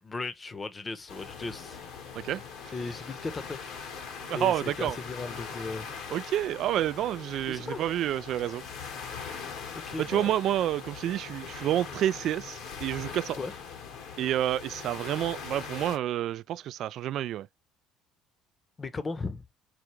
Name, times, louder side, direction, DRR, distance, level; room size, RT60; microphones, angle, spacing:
voice 1, 0.0-1.8 2.7-3.6 4.3-6.1 7.5-7.8 9.8-10.3 13.4-13.5 18.8-19.4, left 3 dB, 30° left, 0.8 m, -36 dB
sound 1, 1.1-16.0, left 6 dB, 75° left, 1.2 m, -41 dB
voice 2, 4.3-5.0 6.1-8.6 10.0-13.4 14.2-17.5, right 12 dB, 65° right, 0.3 m, -29 dB
4.8 x 2.3 x 3.2 m
supercardioid pair, 65°, 0 cm